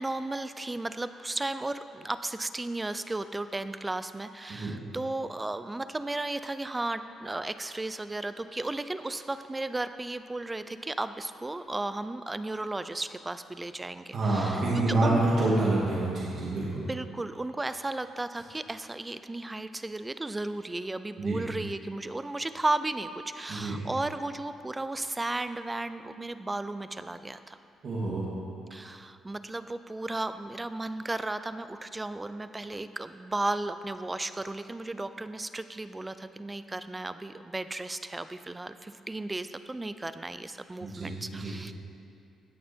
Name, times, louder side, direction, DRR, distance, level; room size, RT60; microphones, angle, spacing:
voice 1, 0.0-15.5 16.9-27.6 28.7-41.7, right 2 dB, 15° right, 12 dB, 0.5 m, -34 dB
voice 2, 14.1-16.8 21.2-21.4 23.5-23.8 27.8-28.3 40.8-41.5, right 2 dB, 55° right, -5 dB, 2.2 m, -27 dB
17.5 x 6.6 x 4.4 m, 2.6 s
cardioid pair, 90°, 0 cm